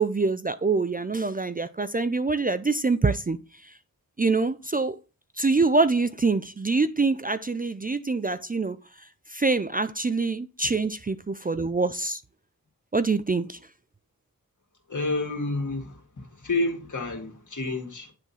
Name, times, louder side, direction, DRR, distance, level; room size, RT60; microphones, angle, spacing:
voice 1, 0.0-3.4 4.2-5.0 5.4-8.8 9.3-12.2 12.9-13.6, right 3 dB, 25° right, 0.5 m, -25 dB
voice 2, 14.9-18.1, left 2 dB, 55° left, 2.0 m, -29 dB
9.8 x 3.6 x 4.1 m
cardioid pair, 45°, 36 cm